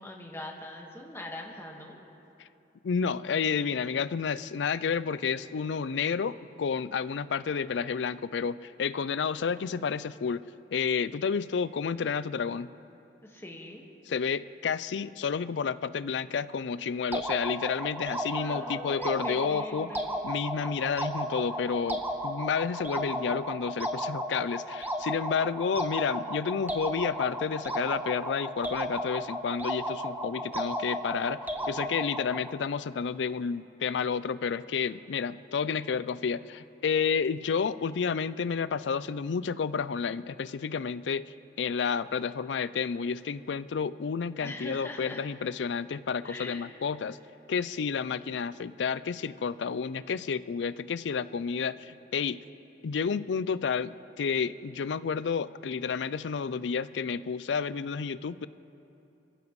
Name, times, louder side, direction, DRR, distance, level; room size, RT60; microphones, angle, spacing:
voice 1, 0.0-2.0 13.2-13.8 18.3-20.1 44.4-45.3 46.2-46.7, left 1 dB, 15° left, 0 dB, 1.6 m, -42 dB
voice 2, 2.8-10.4 10.7-12.7 14.1-19.9 20.2-31.4 31.7-41.2 41.6-47.2 47.5-52.4 52.8-58.5, left 6 dB, 80° left, 16 dB, 0.4 m, -30 dB
sound 1, 17.1-32.5, equal, 10° right, 1.0 m, -34 dB
26.0 x 15.0 x 3.2 m, 2.8 s
head